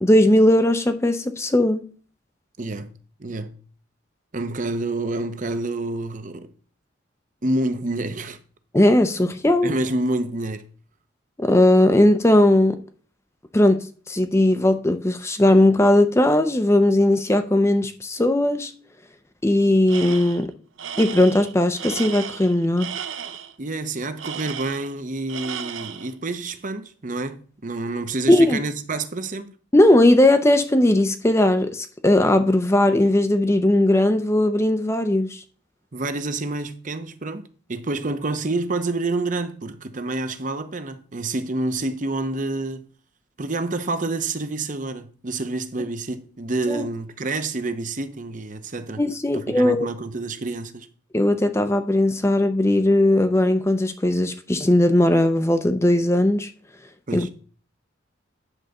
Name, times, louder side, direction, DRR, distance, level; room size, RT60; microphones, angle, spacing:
voice 1, 0.0-1.9 8.7-9.7 11.4-12.8 13.5-18.7 19.4-20.5 21.0-22.9 28.3-28.6 29.7-35.4 46.7-46.8 49.0-49.9 51.1-56.5 57.1-57.3, left 1 dB, 15° left, 0.5 m, -18 dB
voice 2, 2.6-2.9 3.2-3.6 4.3-6.5 7.4-8.4 9.2-9.3 9.6-10.6 23.6-29.5 35.9-42.8 43.4-49.0 49.3-50.9 57.1-57.3, right 2 dB, 40° right, 0.8 m, -28 dB
Tools, 19.9-20.5 20.8-23.5 24.2-25.0 25.3-26.1, right 8 dB, 75° right, 0.7 m, -34 dB
9.9 x 4.0 x 6.5 m
head